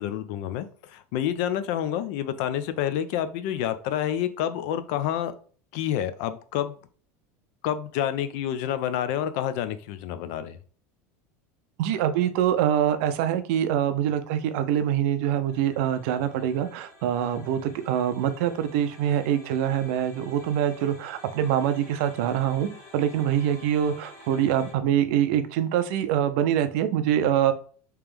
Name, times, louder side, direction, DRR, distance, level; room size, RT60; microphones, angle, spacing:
voice 1, 0.0-5.3 5.7-6.7 7.6-10.6, left 10 dB, 55° left, 12 dB, 0.4 m, -28 dB
voice 2, 11.8-27.5, right 10 dB, 55° right, 10 dB, 0.5 m, -24 dB
sound 1, 15.5-24.7, left 2 dB, 30° left, 1.2 m, -50 dB
3.3 x 2.9 x 3.5 m, 0.43 s
supercardioid pair, 170°, 8 cm